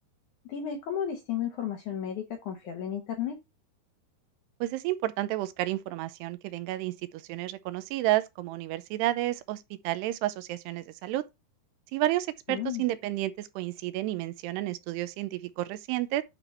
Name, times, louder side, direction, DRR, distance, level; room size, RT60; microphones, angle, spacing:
voice 1, 0.5-3.4 12.5-12.8, left 9 dB, 70° left, 1.9 m, -33 dB
voice 2, 4.6-6.9 7.3-11.2 11.9-16.2, right 15 dB, 85° right, 2.7 m, -31 dB
9.9 x 4.0 x 4.3 m
omnidirectional pair, 4.8 m